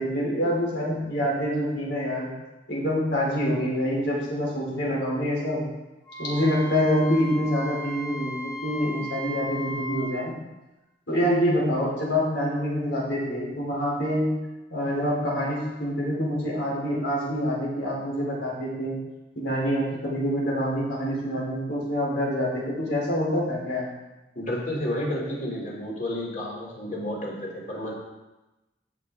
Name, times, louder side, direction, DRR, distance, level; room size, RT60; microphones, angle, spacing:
voice 1, 0.0-2.3 2.7-5.7 6.2-10.3 11.1-14.3 14.7-19.0 19.3-23.9, equal, 90° left, -4 dB, 4.2 m, -26 dB
Wind instrument woodwind instrument, 6.0-10.2, left 1 dB, 25° left, 3.1 m, -36 dB
voice 2, 24.3-27.9, left 1 dB, 45° left, -3 dB, 3.0 m, -31 dB
14.5 x 6.7 x 3.7 m, 1.0 s
head